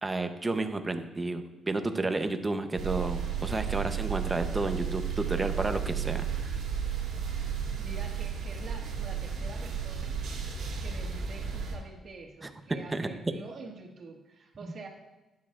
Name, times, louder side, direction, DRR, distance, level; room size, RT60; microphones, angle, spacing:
voice 1, 0.0-6.6 12.4-12.5 12.9-13.1, right 2 dB, 20° right, 7 dB, 0.8 m, -31 dB
sound 1, 2.8-11.8, right 7 dB, 80° right, 2.1 m, -33 dB
voice 2, 7.8-10.2 10.8-14.9, right 3 dB, 50° right, 1 dB, 1.9 m, -46 dB
12.0 x 9.4 x 2.5 m, 1.0 s
cardioid pair, 90°, 0 cm